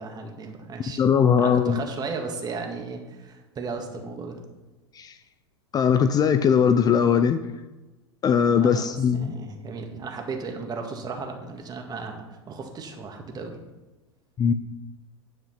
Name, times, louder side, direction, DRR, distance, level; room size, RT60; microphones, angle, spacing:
voice 1, 0.0-1.0 1.4-4.4 8.4-13.6, right 4 dB, 25° right, 3 dB, 2.0 m, -35 dB
voice 2, 1.0-1.8 4.9-5.1 5.7-7.4 8.2-9.3 14.4-14.5, left 7 dB, 25° left, 10 dB, 0.6 m, -20 dB
10.5 x 5.7 x 5.7 m, 1.1 s
hypercardioid pair, 95°, 15 cm